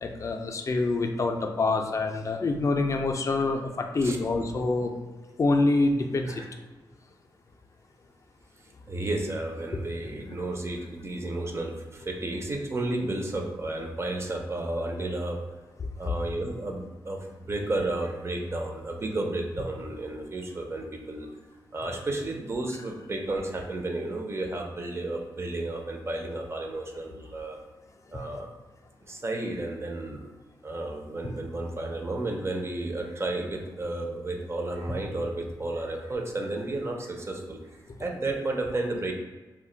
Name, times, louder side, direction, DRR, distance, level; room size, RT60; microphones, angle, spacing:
voice 1, 0.0-4.9 5.4-6.4 10.3-10.4, left 3 dB, 40° left, 4 dB, 0.3 m, -26 dB
voice 2, 8.9-15.4 16.0-21.3 21.7-27.6 28.1-28.5 29.1-30.3 30.6-37.6 38.0-39.1, right 2 dB, 30° right, 2 dB, 0.5 m, -32 dB
2.3 x 2.1 x 3.8 m, 1.2 s
wide cardioid pair, 95°, 8 cm